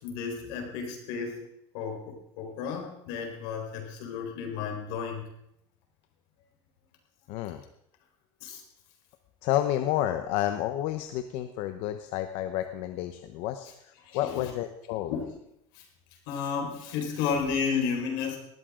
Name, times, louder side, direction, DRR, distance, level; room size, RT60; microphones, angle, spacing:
voice 1, 0.0-1.5 1.7-5.2 8.4-8.6 14.0-14.3 15.1-15.3 15.7-15.8 16.3-18.4, left 6 dB, 85° left, 2 dB, 4.4 m, -32 dB
voice 2, 7.3-7.6 9.4-15.1, left 13 dB, 70° left, 8 dB, 0.9 m, -30 dB
19.0 x 14.0 x 3.8 m, 0.77 s
cardioid pair, 150°, 11 cm